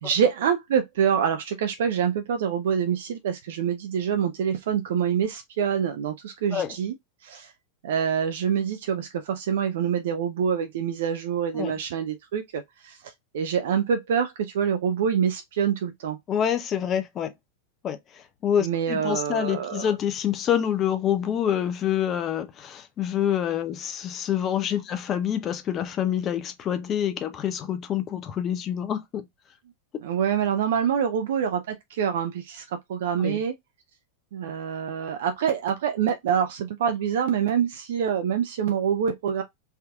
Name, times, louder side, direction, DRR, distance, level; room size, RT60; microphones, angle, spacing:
voice 1, 0.0-6.9 7.2-7.5 7.8-16.2 18.6-19.9 30.0-33.5 34.3-39.4, right 8 dB, 55° right, 0.4 m, -26 dB
voice 2, 16.3-17.3 17.8-18.0 18.4-29.2 33.2-33.4, left 9 dB, 30° left, 0.7 m, -26 dB
3.5 x 2.8 x 2.3 m
figure-of-eight pair, 90°, 0 cm